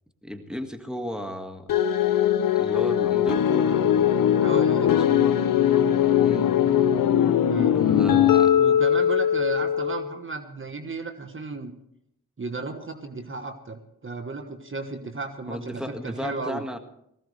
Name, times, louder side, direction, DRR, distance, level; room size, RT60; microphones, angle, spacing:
voice 1, 0.2-1.7 2.6-3.9 4.9-5.1 6.2-6.6 7.7-8.6 15.5-16.8, equal, ahead, 6 dB, 1.8 m, -34 dB
sound 1, 1.7-10.1, left 9 dB, 85° left, 0.8 m, -20 dB
voice 2, 4.4-5.3 7.5-7.8 8.5-11.7 12.4-16.6, right 3 dB, 40° right, 7 dB, 1.3 m, -34 dB
19.0 x 15.5 x 3.3 m, 0.78 s
cardioid pair, 50°, 33 cm